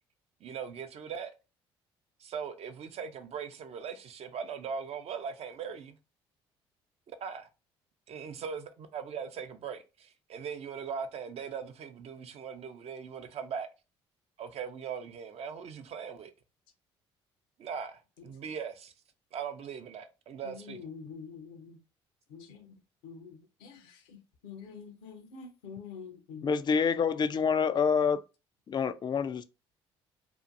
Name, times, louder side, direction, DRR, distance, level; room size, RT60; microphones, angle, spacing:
voice 1, 0.4-1.3 2.2-6.0 7.1-7.5 8.1-13.7 14.4-16.3 17.6-18.9 19.3-20.8, right 6 dB, 50° right, 0.5 m, -40 dB
voice 2, 20.4-21.8 22.3-22.7 23.0-26.5, left 6 dB, 80° left, 0.7 m, -46 dB
voice 3, 26.4-28.2 28.7-29.4, left 6 dB, 35° left, 0.3 m, -27 dB
2.7 x 2.5 x 2.5 m
hypercardioid pair, 55°, 13 cm